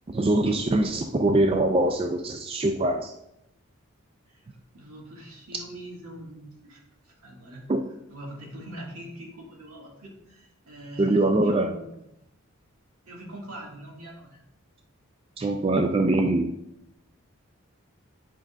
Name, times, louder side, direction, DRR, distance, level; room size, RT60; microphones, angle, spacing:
voice 1, 0.1-3.1 7.7-7.8 11.0-11.7 15.4-16.5, right 2 dB, 25° right, 5 dB, 0.3 m, -23 dB
voice 2, 4.7-7.7 8.1-11.9 13.1-14.4, equal, 80° right, -2 dB, 2.1 m, -43 dB
9.8 x 5.2 x 2.4 m, 0.82 s
head